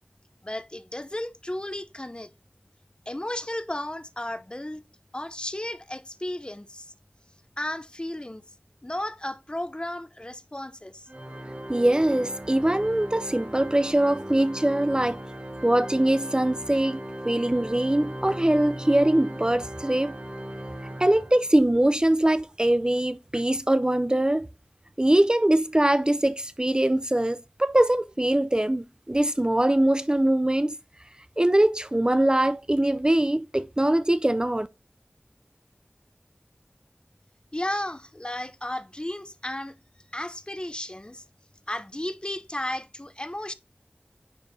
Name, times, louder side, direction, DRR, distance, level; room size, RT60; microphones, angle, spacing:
voice 1, 0.4-2.3 3.1-4.8 5.1-6.9 7.6-8.4 8.8-11.1 37.5-39.8 40.1-41.2 41.7-43.5, left 1 dB, 25° left, 0.5 m, -34 dB
Organ, 11.1-21.7, right 1 dB, 40° right, 1.1 m, -38 dB
voice 2, 11.7-15.2 15.6-20.1 21.0-24.5 25.0-30.7 31.4-34.7, right 1 dB, 25° right, 0.4 m, -22 dB
9.6 x 4.5 x 2.6 m
wide cardioid pair, 40°, 4 cm